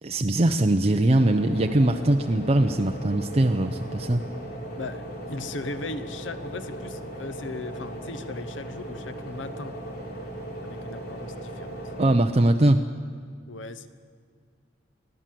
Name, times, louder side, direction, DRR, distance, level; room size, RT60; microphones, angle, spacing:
voice 1, 0.0-4.2 12.0-12.8, right 1 dB, 35° right, 5 dB, 0.7 m, -21 dB
sound 1, 1.1-12.1, right 1 dB, 60° left, 4.5 m, -37 dB
voice 2, 4.8-9.8 10.6-11.8 13.5-13.9, left 3 dB, 80° left, 13 dB, 0.9 m, -38 dB
25.0 x 16.0 x 7.7 m, 2.2 s
head